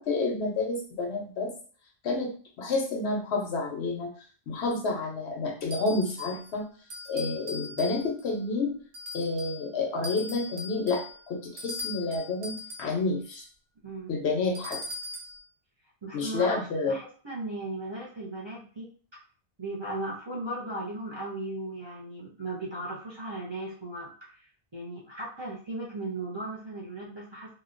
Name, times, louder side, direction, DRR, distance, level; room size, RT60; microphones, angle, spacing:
voice 1, 0.0-1.5 2.0-4.1 4.5-6.6 7.1-8.7 9.1-13.5 14.1-14.8 16.1-16.9, left 3 dB, 90° left, 2 dB, 1.0 m, -29 dB
sound 1, 5.7-6.5 6.9-8.3 8.9-9.6 10.0-13.0 14.5-15.4, left 2 dB, 65° right, 0.9 m, -40 dB
voice 2, 16.0-18.9 19.6-27.6, right 2 dB, 35° right, -6 dB, 0.5 m, -37 dB
2.9 x 2.2 x 2.4 m, 0.43 s
omnidirectional pair, 1.1 m